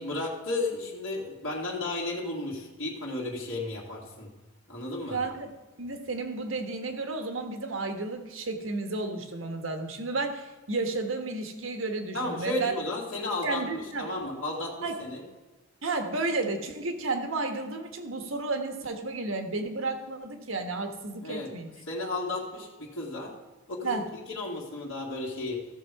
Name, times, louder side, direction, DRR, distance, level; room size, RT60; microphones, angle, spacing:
voice 1, 0.0-4.3 4.7-5.2 12.1-13.6 14.0-15.2 21.2-21.5 21.9-23.3 23.7-24.0 24.3-25.6, left 2 dB, 70° left, -5 dB, 2.0 m, -33 dB
voice 2, 5.1-12.7 13.4-14.1 14.8-15.0 15.8-21.7 23.8-24.1, right 3 dB, 70° right, 5 dB, 1.4 m, -32 dB
15.0 x 6.8 x 4.7 m, 1.2 s
head